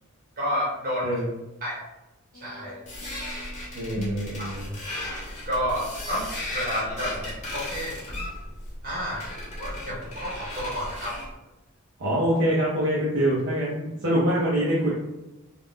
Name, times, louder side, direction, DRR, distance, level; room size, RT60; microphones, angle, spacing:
voice 1, 0.4-1.2 1.6-1.8 2.3-2.8 4.4-4.5 5.4-8.0 8.8-9.2 9.6-11.2, equal, 40° right, -6 dB, 1.1 m, -30 dB
voice 2, 1.0-1.3 3.7-4.7 12.0-14.9, equal, 55° right, -7 dB, 0.6 m, -25 dB
sound 1, 2.3-5.7, right 2 dB, 50° left, 0.3 m, -42 dB
sound 2, 2.9-11.3, left 1 dB, 30° left, 0.9 m, -36 dB
2.4 x 2.1 x 3.5 m, 0.99 s
head